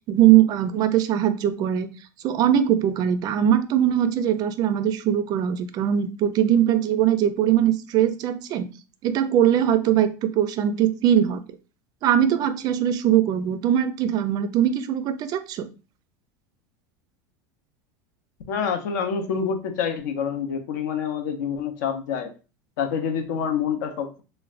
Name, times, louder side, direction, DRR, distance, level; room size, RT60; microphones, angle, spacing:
voice 1, 0.1-1.9 2.2-8.7 9.0-11.4 12.0-15.7, right 10 dB, 40° right, 11 dB, 0.4 m, -21 dB
voice 2, 18.5-22.3 22.8-24.2, left 7 dB, 80° left, 6 dB, 0.6 m, -27 dB
3.2 x 2.1 x 2.4 m, 0.32 s
supercardioid pair, 125°, 10 cm